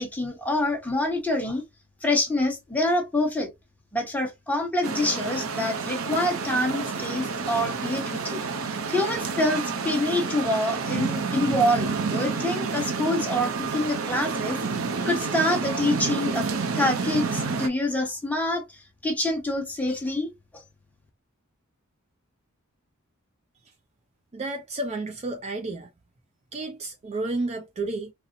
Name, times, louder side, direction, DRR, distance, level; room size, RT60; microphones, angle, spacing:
voice 1, 0.0-1.6 2.0-3.5 3.9-8.4 8.9-14.6 15.1-16.5 16.7-18.6 19.0-20.3, left 1 dB, 5° left, 1.0 m, -26 dB
sound 1, 4.8-17.7, right 4 dB, 70° right, 0.6 m, -29 dB
voice 2, 24.3-25.9 26.5-28.1, right 2 dB, 30° right, 0.4 m, -31 dB
4.0 x 2.0 x 2.6 m
head